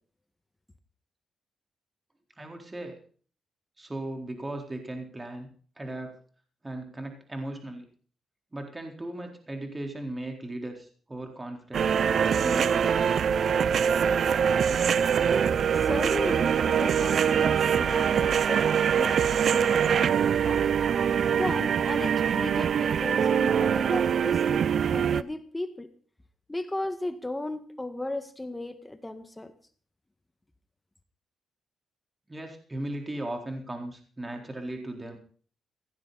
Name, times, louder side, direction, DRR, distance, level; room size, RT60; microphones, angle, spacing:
voice 1, 2.4-3.0 3.8-5.5 5.8-6.1 6.6-7.8 8.5-11.9 12.4-13.2 32.3-35.2, right 1 dB, 20° right, 3 dB, 4.0 m, -37 dB
sound 1, 11.7-25.2, right 7 dB, 65° right, 0.6 m, -24 dB
voice 2, 15.8-20.6 21.4-25.9 26.5-29.5, left 1 dB, 15° left, 9 dB, 1.7 m, -35 dB
17.0 x 15.5 x 4.1 m, 0.43 s
cardioid pair, 70°, 0 cm